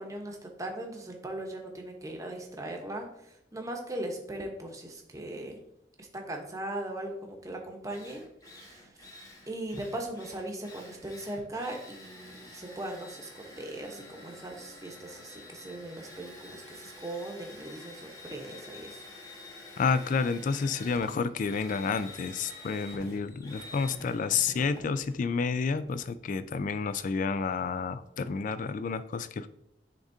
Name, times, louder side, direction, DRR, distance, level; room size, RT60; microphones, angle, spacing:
voice 1, 0.0-5.6 6.0-8.2 8.6-9.1 9.5-19.0, right 1 dB, 20° right, 2 dB, 0.9 m, -39 dB
Drill, 7.5-7.6 7.9-26.0, left 1 dB, 20° left, 1.2 m, -48 dB
voice 2, 19.8-29.5, left 5 dB, 45° left, 13 dB, 0.3 m, -30 dB
10.5 x 3.6 x 2.7 m, 0.77 s
head